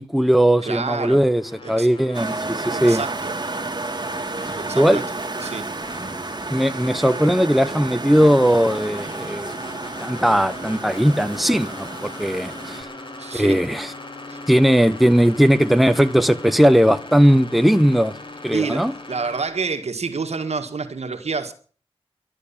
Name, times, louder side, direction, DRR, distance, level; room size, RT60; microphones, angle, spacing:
voice 1, 0.0-3.0 4.7-5.0 6.5-9.5 10.0-12.9 13.3-13.9 14.5-18.1 18.4-18.9, equal, ahead, 1.1 m, -18 dB
sound 1, 0.6-19.4, left 2 dB, 50° left, 3.5 m, -40 dB
voice 2, 0.6-1.2 1.6-1.9 2.7-3.3 4.6-5.1 5.4-5.7 13.2-13.6 14.3-14.4 18.5-21.5, right 4 dB, 85° right, 1.9 m, -28 dB
sound 2, 2.1-12.8, right 3 dB, 40° right, 2.1 m, -31 dB
12.5 x 11.0 x 8.7 m
wide cardioid pair, 75°, 11 cm